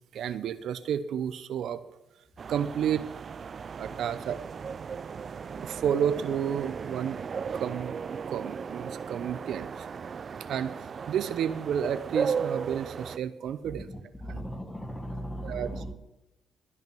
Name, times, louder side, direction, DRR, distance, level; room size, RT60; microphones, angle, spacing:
voice 1, 0.1-1.8 2.5-3.1 3.8-4.4 5.6-7.2 7.5-9.9 10.5-13.9 14.3-14.4 15.4-15.7, right 8 dB, 70° right, 13 dB, 0.7 m, -31 dB
sound 1, 2.4-13.2, right 6 dB, 45° right, 0.3 m, -36 dB
voice 2, 13.6-15.9, equal, 10° left, 7 dB, 1.6 m, -38 dB
15.5 x 5.8 x 7.7 m, 0.94 s
cardioid pair, 90°, 0 cm